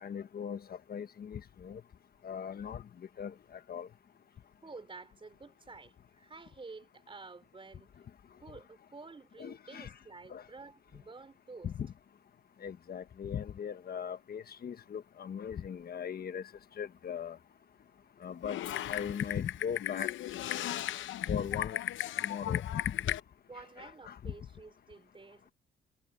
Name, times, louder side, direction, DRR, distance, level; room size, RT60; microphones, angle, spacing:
voice 1, 0.0-1.8 2.2-2.8 3.2-3.3 3.7-3.9 9.4-9.9 10.3-10.4 11.6-11.9 12.6-16.4 16.8-17.4 18.2-18.6 18.9-20.1 21.3-21.8 22.2-22.7 23.8-24.2, left 8 dB, 50° left, 1.3 m, -38 dB
voice 2, 4.6-7.9 8.4-11.7 23.5-25.5, right 3 dB, 25° right, 3.6 m, -50 dB
Typing, 18.4-23.2, left 13 dB, 75° left, 0.8 m, -36 dB
cardioid pair, 90°, 20 cm